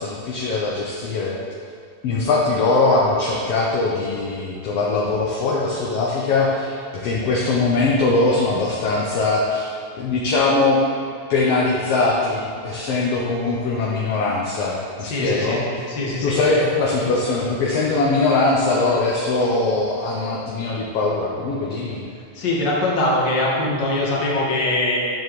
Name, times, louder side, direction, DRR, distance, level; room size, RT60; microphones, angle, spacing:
voice 1, 0.0-1.4 2.0-6.8 7.0-9.7 10.0-10.8 11.3-15.8 16.2-22.0, left 3 dB, 70° left, -3 dB, 1.7 m, -21 dB
voice 2, 15.0-15.6 15.9-16.4 22.4-25.0, left 2 dB, 45° left, -5 dB, 1.9 m, -22 dB
10.5 x 7.1 x 3.1 m, 2.3 s
omnidirectional pair, 3.3 m